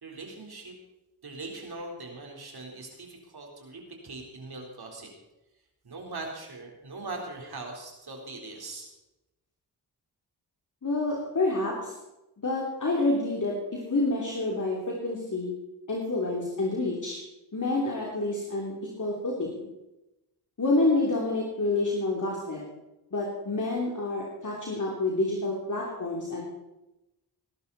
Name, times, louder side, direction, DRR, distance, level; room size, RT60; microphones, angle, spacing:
voice 1, 0.0-0.8 1.2-5.1 5.8-8.9, right 2 dB, 60° right, 0 dB, 4.2 m, -41 dB
voice 2, 10.8-11.9 12.4-15.5 15.9-17.2 17.5-19.6 20.6-22.6 23.1-26.4, left 2 dB, 45° left, -3 dB, 3.4 m, -28 dB
19.0 x 11.5 x 4.2 m, 0.97 s
cardioid pair, 50°, 42 cm